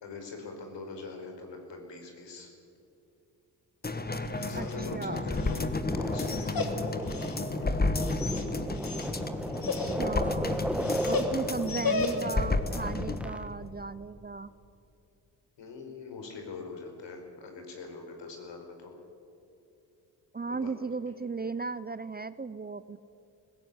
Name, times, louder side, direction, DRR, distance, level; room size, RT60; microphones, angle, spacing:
voice 1, 0.0-2.5 4.4-5.6 5.9-7.0 15.6-19.0 20.5-20.7, left 4 dB, 70° left, 3 dB, 4.9 m, -43 dB
sound 1, 3.8-13.3 13.6-13.7, left 3 dB, 20° left, 1.5 m, -32 dB
Dog, 4.2-12.5, left 4 dB, 50° left, 2.9 m, -36 dB
voice 2, 4.5-5.3 9.6-10.6 11.1-14.5 20.3-23.0, right 4 dB, 20° right, 15 dB, 0.6 m, -36 dB
sound 2, 4.8-13.5, equal, 5° right, 1.5 m, -36 dB
20.0 x 16.5 x 9.7 m, 2.7 s
supercardioid pair, 60°, 46 cm